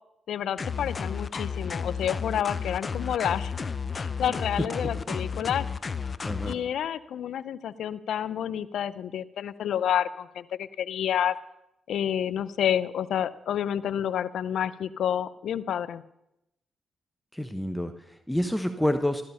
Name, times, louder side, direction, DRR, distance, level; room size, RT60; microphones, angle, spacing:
voice 1, 0.3-3.5 3.9-5.7 6.5-11.4 11.9-16.0, left 9 dB, 80° left, 16 dB, 0.6 m, -29 dB
sound 1, 0.6-6.6, left 5 dB, 45° left, 0.8 m, -32 dB
voice 2, 4.6-5.2 6.2-6.6 17.3-19.2, left 1 dB, 5° left, 8 dB, 1.1 m, -29 dB
14.5 x 12.5 x 5.6 m, 0.84 s
supercardioid pair, 55°, 0 cm